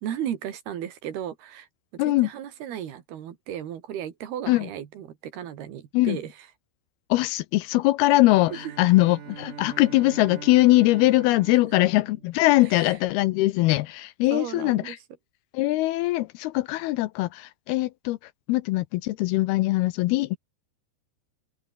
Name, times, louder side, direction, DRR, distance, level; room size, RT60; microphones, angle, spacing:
voice 1, 0.0-1.7 1.9-6.3 8.5-8.7 12.7-12.9 14.3-15.0, right 10 dB, 70° right, 4.0 m, -35 dB
voice 2, 2.0-2.3 4.5-4.7 5.9-6.2 7.1-15.0 15.5-18.2 18.5-20.4, left 18 dB, 80° left, 2.5 m, -22 dB
Bowed string instrument, 8.1-12.9, right 8 dB, 55° right, 3.8 m, -43 dB
open air
omnidirectional pair, 4.8 m